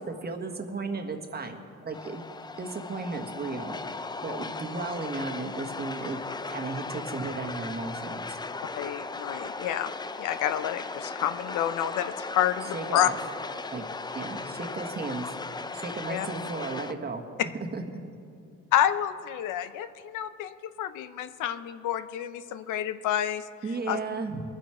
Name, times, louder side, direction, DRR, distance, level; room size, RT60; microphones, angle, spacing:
voice 1, 0.0-2.2 2.6-6.2 6.5-8.4 12.7-13.2 13.7-13.9 14.1-15.3 15.7-17.2 17.7-17.8 23.6-24.4, right 3 dB, 30° right, 4 dB, 1.5 m, -35 dB
sound 1, 1.9-16.9, left 3 dB, 15° left, 0.4 m, -37 dB
voice 2, 8.8-9.9 10.2-13.1 16.1-16.3 18.7-23.4 23.9-24.0, left 11 dB, 85° left, 12 dB, 0.6 m, -29 dB
22.0 x 7.5 x 4.8 m, 2.6 s
cardioid pair, 90°, 30 cm